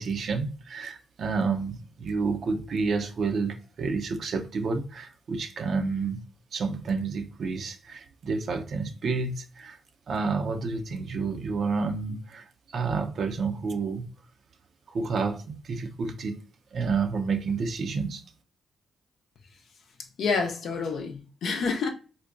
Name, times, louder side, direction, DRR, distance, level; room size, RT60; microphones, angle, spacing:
voice 1, 0.0-6.2 6.5-9.8 10.1-12.5 12.7-14.1 14.9-16.4 16.7-18.2, right 4 dB, 60° right, 0.5 m, -29 dB
voice 2, 20.2-21.9, left 4 dB, 70° left, 0.6 m, -28 dB
3.9 x 2.1 x 2.4 m
hypercardioid pair, 40°, 0 cm